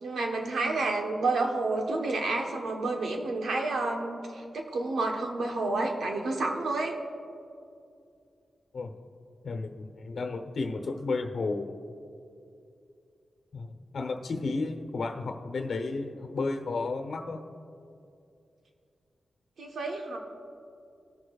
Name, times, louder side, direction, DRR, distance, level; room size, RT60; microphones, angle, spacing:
voice 1, 0.0-6.9 19.6-20.2, right 2 dB, 85° right, 2 dB, 1.2 m, -30 dB
voice 2, 9.4-11.7 13.5-17.4, left 3 dB, 70° left, 6 dB, 1.0 m, -32 dB
19.5 x 6.6 x 2.4 m, 2.5 s
cardioid pair, 80°, 0 cm